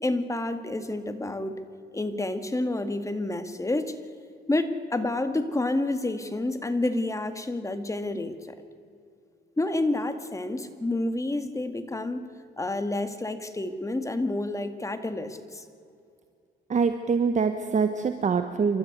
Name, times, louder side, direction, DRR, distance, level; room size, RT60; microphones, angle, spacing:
voice 1, 0.0-1.6 1.9-4.0 4.5-8.6 9.6-12.2 12.6-15.6, left 2 dB, 15° left, 8 dB, 2.0 m, -29 dB
voice 2, 16.7-18.8, right 5 dB, 40° right, 8 dB, 1.2 m, -24 dB
29.0 x 13.0 x 8.1 m, 2.4 s
cardioid pair, 90°, 20 cm